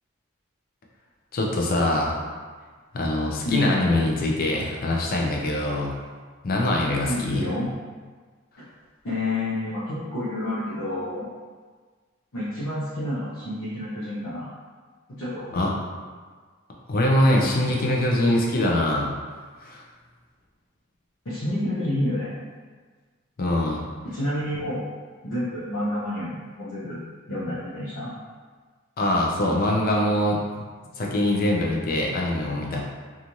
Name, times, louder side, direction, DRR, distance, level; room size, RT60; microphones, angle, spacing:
voice 1, 1.3-2.2 2.9-6.0 6.4-7.4 15.5-15.7 16.9-19.1 19.6-19.8 23.4-23.8 29.0-30.6 31.0-32.8, left 1 dB, 50° left, -1 dB, 0.5 m, -23 dB
voice 2, 7.0-7.7 9.0-11.3 12.3-14.5 15.1-15.5 21.2-22.3 24.0-24.9 25.2-27.0 27.3-28.1, left 1 dB, 80° left, -11 dB, 0.7 m, -29 dB
3.0 x 2.4 x 2.6 m, 1.5 s
head